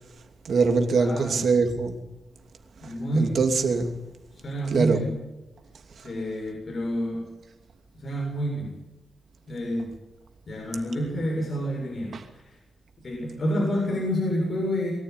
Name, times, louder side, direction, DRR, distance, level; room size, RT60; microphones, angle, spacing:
voice 1, 0.4-2.0 2.8-3.9 4.7-5.0 12.1-12.2, right 4 dB, 70° right, 2.8 m, -23 dB
voice 2, 1.0-1.4 2.8-3.4 4.3-5.1 6.0-7.2 8.0-8.7 9.5-9.9 10.5-12.1 13.0-14.9, equal, 45° left, 7.1 m, -28 dB
23.0 x 14.5 x 9.9 m
wide cardioid pair, 130°, 0 cm